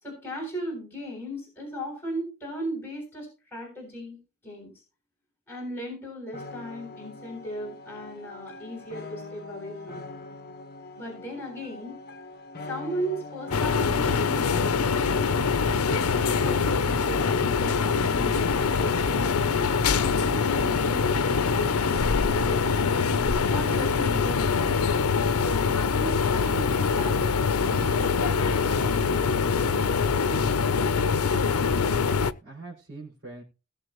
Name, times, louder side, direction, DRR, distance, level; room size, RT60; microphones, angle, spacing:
voice 1, 0.0-4.2 4.4-4.7 5.5-10.0 11.0-12.0 12.7-15.3 15.9-19.4 19.8-21.4 21.7-22.7 23.5-25.1 25.4-27.2 27.7-30.4, right 1 dB, 10° left, -3 dB, 7.2 m, -37 dB
sound 1, 6.3-21.8, left 3 dB, 45° left, 1.2 m, -42 dB
sound 2, 13.5-32.3, left 5 dB, 85° left, 0.7 m, -24 dB
voice 2, 31.5-33.4, right 2 dB, 55° right, -4 dB, 5.6 m, -43 dB
20.5 x 7.4 x 3.0 m, 0.32 s
head